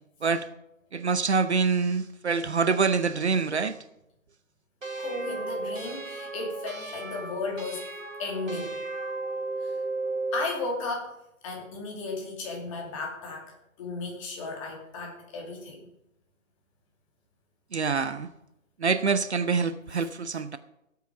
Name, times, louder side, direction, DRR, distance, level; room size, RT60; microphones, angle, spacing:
voice 1, 0.9-3.8 17.7-18.3 18.8-20.6, right 5 dB, 55° right, 13 dB, 0.8 m, -25 dB
sound 1, 4.8-10.5, right 3 dB, 75° right, 2.0 m, -34 dB
voice 2, 5.0-7.9 8.2-8.8 9.6-9.7 10.3-11.2 11.4-15.9, left 3 dB, 25° left, 1 dB, 2.6 m, -35 dB
16.5 x 8.3 x 5.2 m, 0.83 s
figure-of-eight pair, 140°, 40 cm